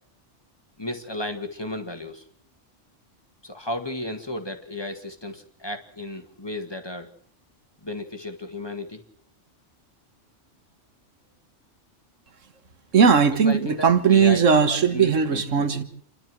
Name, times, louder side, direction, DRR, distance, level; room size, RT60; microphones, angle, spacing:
voice 1, 0.8-2.2 3.4-7.1 7.8-9.0 13.4-15.8, left 1 dB, 20° left, 1.8 m, -34 dB
voice 2, 12.9-15.8, right 6 dB, 85° right, 1.8 m, -18 dB
28.5 x 12.0 x 7.7 m
omnidirectional pair, 1.3 m